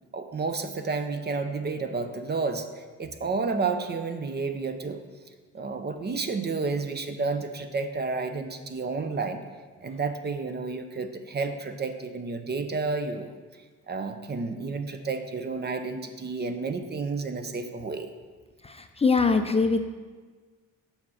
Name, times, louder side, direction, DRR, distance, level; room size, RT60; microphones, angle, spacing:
voice 1, 0.1-5.0 5.5-9.4 9.8-13.4 13.9-18.1, right 4 dB, 35° right, 8 dB, 0.7 m, -31 dB
voice 2, 18.6-19.9, left 4 dB, 20° left, 6 dB, 0.5 m, -23 dB
7.3 x 5.2 x 5.6 m, 1.4 s
cardioid pair, 90°, 30 cm